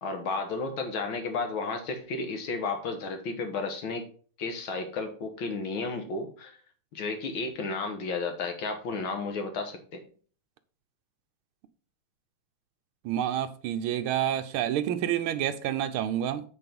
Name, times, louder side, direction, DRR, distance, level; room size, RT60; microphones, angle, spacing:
voice 1, 0.0-4.0 4.4-6.6 6.9-10.0, left 3 dB, 65° left, 2.2 m, -33 dB
voice 2, 13.0-16.4, right 10 dB, 75° right, 1.6 m, -28 dB
9.0 x 4.3 x 5.4 m
omnidirectional pair, 2.4 m